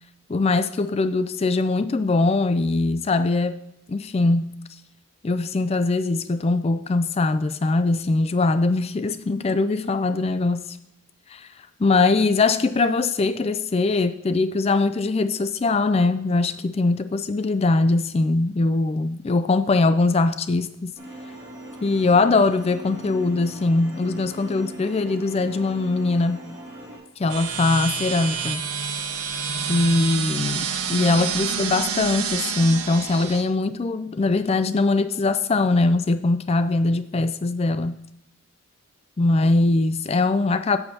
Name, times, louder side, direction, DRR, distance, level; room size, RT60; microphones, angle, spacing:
voice 1, 0.3-3.6 3.9-4.6 5.2-10.7 11.3-11.5 11.8-20.9 21.8-26.4 27.2-28.7 29.7-38.0 39.2-40.8, left 3 dB, 25° left, 12 dB, 0.3 m, -21 dB
sound 1, 21.0-27.0, right 1 dB, 15° right, 2.7 m, -40 dB
sound 2, 27.3-33.4, right 6 dB, 90° right, 1.1 m, -28 dB
10.5 x 8.1 x 2.8 m, 0.83 s
head